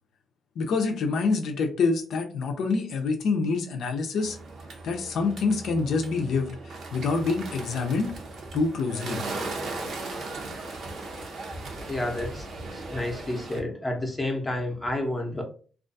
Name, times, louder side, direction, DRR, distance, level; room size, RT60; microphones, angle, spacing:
voice 1, 0.6-4.4 4.8-8.1 8.5-9.2, left 4 dB, 70° left, 4 dB, 0.5 m, -26 dB
Bird, 4.2-13.6, right 3 dB, 65° right, 0.7 m, -37 dB
voice 2, 11.9-12.5 12.7-15.4, left 1 dB, 20° left, 2 dB, 0.6 m, -30 dB
2.4 x 2.3 x 2.6 m, 0.40 s
cardioid pair, 85°, 0 cm